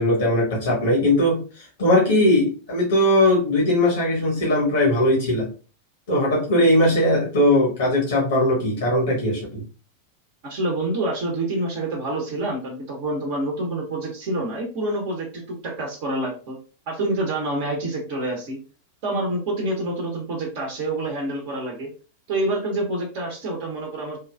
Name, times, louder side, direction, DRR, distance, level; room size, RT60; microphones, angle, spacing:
voice 1, 0.0-5.5 6.1-9.6, left 1 dB, 60° left, -3 dB, 1.2 m, -19 dB
voice 2, 10.4-16.6 16.9-18.6 19.0-21.9 22.3-24.2, right 1 dB, 45° right, 0 dB, 1.0 m, -27 dB
3.6 x 2.3 x 2.4 m, 0.36 s
figure-of-eight pair, 90°, 0 cm